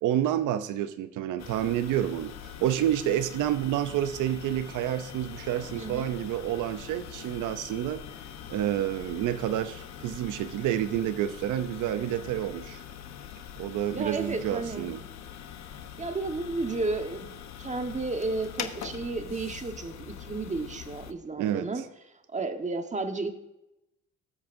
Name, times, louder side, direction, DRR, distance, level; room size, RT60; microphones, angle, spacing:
voice 1, 0.0-2.3 2.6-8.0 8.5-12.8 13.6-15.0 21.4-21.7, right 11 dB, 85° right, 11 dB, 0.6 m, -29 dB
sound 1, 1.4-21.1, left 9 dB, 65° left, 1.0 m, -43 dB
voice 2, 5.8-6.1 13.9-14.9 16.0-17.3 17.6-21.8 22.3-23.3, right 3 dB, 25° right, 6 dB, 1.3 m, -32 dB
18.5 x 8.6 x 2.6 m, 0.89 s
cardioid pair, 90°, 30 cm